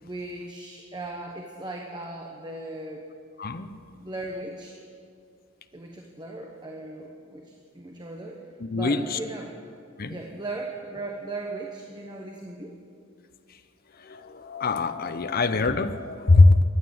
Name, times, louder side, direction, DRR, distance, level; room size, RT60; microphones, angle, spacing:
voice 1, 0.0-3.1 3.9-4.8 5.7-8.4 8.7-9.6 10.1-12.7, right 2 dB, 20° right, 1 dB, 1.2 m, -37 dB
voice 2, 3.4-3.7 8.6-9.2 10.0-10.2 14.0-16.6, left 3 dB, 45° left, 10 dB, 0.7 m, -22 dB
16.0 x 11.5 x 7.8 m, 2.3 s
head